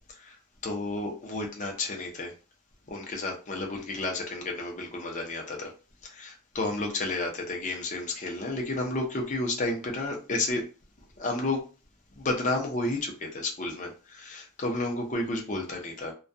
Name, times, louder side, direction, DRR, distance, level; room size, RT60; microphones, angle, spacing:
voice 1, 0.6-2.3 2.9-5.7 6.0-10.6 11.2-11.7 12.2-16.1, left 2 dB, 35° left, 1 dB, 0.5 m, -31 dB
2.3 x 2.2 x 2.6 m, 0.33 s
head